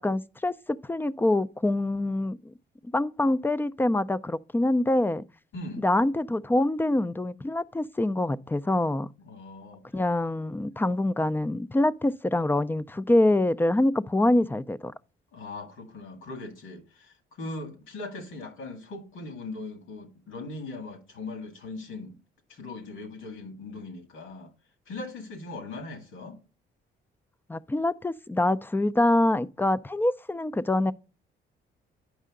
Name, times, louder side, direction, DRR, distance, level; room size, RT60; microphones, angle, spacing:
voice 1, 0.0-2.5 2.9-5.2 5.8-9.1 9.9-14.9 27.5-30.9, left 1 dB, 10° left, 0.4 m, -25 dB
voice 2, 5.5-5.8 9.2-10.0 15.3-22.2 22.5-24.5 24.9-26.4, left 2 dB, 85° left, 2.1 m, -40 dB
9.2 x 5.5 x 3.7 m
cardioid pair, 90°, 20 cm